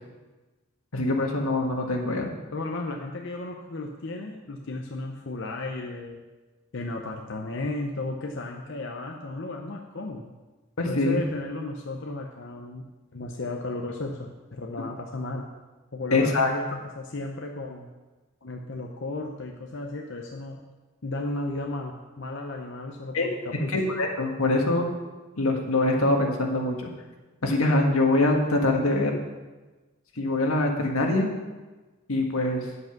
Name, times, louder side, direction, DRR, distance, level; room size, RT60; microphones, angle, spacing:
voice 1, 0.9-2.3 10.8-11.2 16.1-16.5 23.1-23.3 23.7-24.9 25.4-26.9 27.4-29.2 30.1-31.3 32.1-32.7, left 2 dB, 85° left, 1 dB, 1.7 m, -24 dB
voice 2, 2.5-6.2 6.7-10.3 10.8-12.8 13.1-15.5 15.9-17.9 18.4-20.6 21.0-23.7, left 2 dB, 60° left, 1 dB, 0.8 m, -34 dB
9.9 x 8.0 x 5.9 m, 1.2 s
head